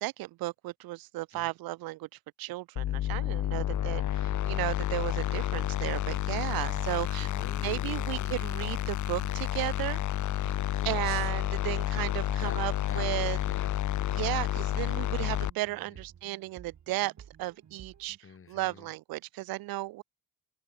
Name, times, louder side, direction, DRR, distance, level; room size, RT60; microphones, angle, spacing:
voice 1, 0.0-2.1 2.4-7.3 7.6-10.0 10.4-10.5 10.8-13.4 14.1-17.1 17.4-18.2 18.5-20.0, right 19 dB, 85° right, 0.5 m, -34 dB
sound 1, 2.8-15.5, left 13 dB, 55° left, 0.7 m, -30 dB
sound 2, 3.0-18.2, right 8 dB, 50° right, 3.5 m, -53 dB
voice 2, 3.5-4.1 7.2-8.5 10.7-11.3 12.4-13.8 15.7-16.0 18.2-18.9, left 6 dB, 35° left, 2.8 m, -48 dB
cardioid pair, 110°, 35 cm